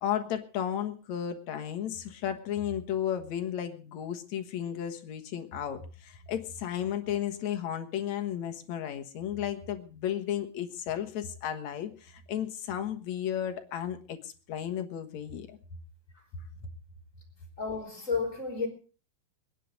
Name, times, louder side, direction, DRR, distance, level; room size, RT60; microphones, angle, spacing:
voice 1, 0.0-15.6, left 10 dB, 55° left, 7 dB, 2.3 m, -34 dB
voice 2, 17.6-18.7, left 4 dB, 20° left, 2 dB, 3.7 m, -31 dB
22.5 x 10.0 x 5.2 m, 0.37 s
omnidirectional pair, 4.4 m